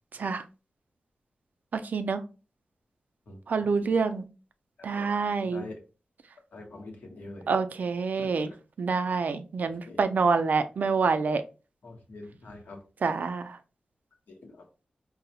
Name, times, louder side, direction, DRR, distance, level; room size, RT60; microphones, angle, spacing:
voice 1, 1.7-2.2 3.5-4.2 4.8-5.6 7.5-8.5 8.8-11.4 13.0-13.6, right 4 dB, 70° right, 9 dB, 0.4 m, -27 dB
voice 2, 3.3-4.1 4.8-5.0 5.4-5.8 6.5-7.5 8.2-8.6 9.9-10.1 11.8-12.8 14.3-14.6, left 2 dB, 75° left, 2 dB, 0.9 m, -45 dB
3.9 x 2.1 x 2.7 m, 0.33 s
cardioid pair, 60°, 3 cm